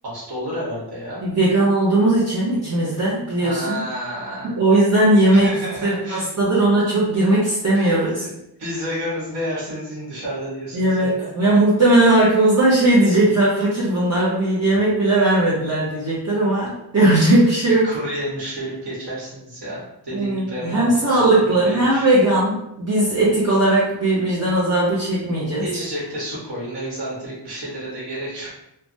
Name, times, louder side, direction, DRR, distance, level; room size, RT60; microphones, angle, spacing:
voice 1, 0.0-1.2 3.4-4.6 5.3-6.2 7.7-8.3 8.6-11.3 17.6-22.1 25.6-28.5, equal, 60° right, -6 dB, 1.2 m, -30 dB
voice 2, 1.2-3.8 4.4-5.5 5.8-8.3 10.7-17.9 20.2-25.6, right 1 dB, 35° right, -8 dB, 0.6 m, -18 dB
3.1 x 2.2 x 2.6 m, 0.83 s
wide cardioid pair, 180°, 44 cm